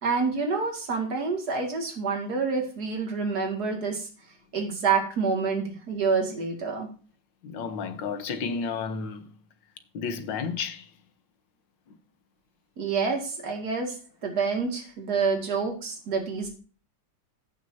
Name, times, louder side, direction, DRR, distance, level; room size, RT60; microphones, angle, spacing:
voice 1, 0.0-4.1 4.5-6.9 12.8-14.0 14.2-16.5, right 5 dB, 60° right, 2.7 m, -27 dB
voice 2, 7.4-9.3 9.9-10.9, left 5 dB, 85° left, 1.8 m, -32 dB
15.5 x 6.3 x 2.8 m
omnidirectional pair, 1.9 m